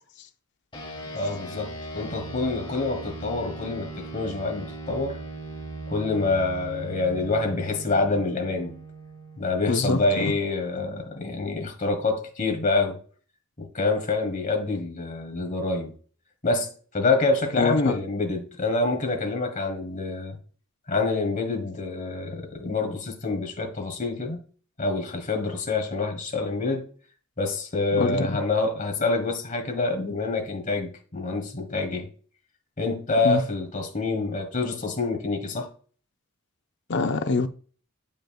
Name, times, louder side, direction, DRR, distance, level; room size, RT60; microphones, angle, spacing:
sound 1, 0.7-10.5, right 2 dB, 20° left, 1.2 m, -39 dB
voice 1, 1.1-5.2 5.9-8.8 9.4-13.0 13.6-15.9 16.4-20.4 20.9-24.4 24.8-26.9 27.4-32.1 32.8-35.7, left 3 dB, 40° left, 1.5 m, -26 dB
voice 2, 9.7-10.3 17.6-18.0 27.9-28.4 33.2-33.4 36.9-37.5, left 4 dB, 55° left, 0.6 m, -25 dB
7.6 x 5.3 x 2.3 m
head